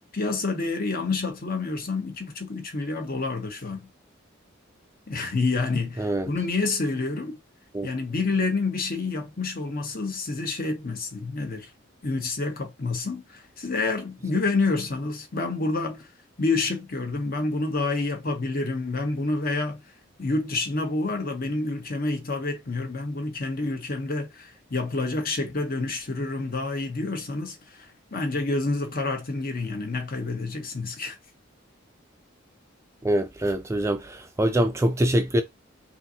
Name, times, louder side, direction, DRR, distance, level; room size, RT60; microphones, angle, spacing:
voice 1, 0.1-3.9 5.1-7.4 7.8-11.7 12.0-16.1 16.4-19.8 20.2-31.2, left 3 dB, 45° left, 1.1 m, -28 dB
voice 2, 33.0-35.4, right 1 dB, 15° right, 0.4 m, -24 dB
5.5 x 2.6 x 2.8 m
head